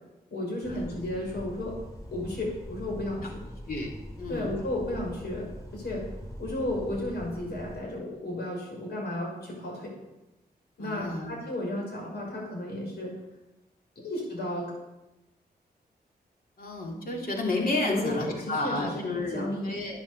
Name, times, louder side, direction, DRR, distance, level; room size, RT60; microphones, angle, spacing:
voice 1, 0.3-1.8 2.1-3.3 4.3-6.0 6.4-9.9 10.8-13.1 14.0-14.7 17.9-19.7, left 1 dB, 90° left, -2 dB, 6.0 m, -33 dB
sound 1, 0.6-7.8, equal, 20° left, 3.3 m, -42 dB
voice 2, 4.2-4.5 10.8-11.3 16.6-20.0, left 2 dB, 60° left, -1 dB, 3.1 m, -31 dB
12.0 x 10.0 x 6.9 m, 0.97 s
wide cardioid pair, 145°, 17 cm